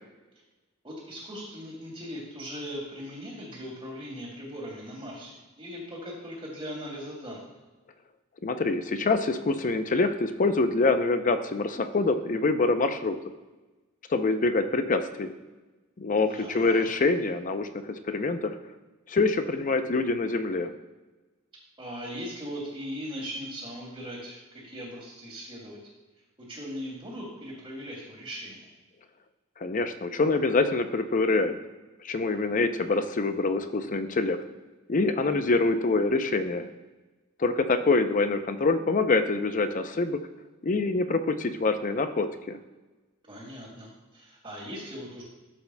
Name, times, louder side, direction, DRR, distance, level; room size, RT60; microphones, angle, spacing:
voice 1, 0.8-7.4 16.2-16.9 21.8-24.4 24.6-25.8 26.4-28.7 43.3-45.2, equal, 25° right, -9 dB, 2.1 m, -39 dB
voice 2, 8.4-13.2 14.1-15.3 16.0-18.5 19.1-20.7 29.6-31.6 32.0-34.4 34.9-36.7 37.4-40.2 40.6-42.6, left 3 dB, 40° left, 9 dB, 0.5 m, -25 dB
13.5 x 7.1 x 2.2 m, 1.2 s
head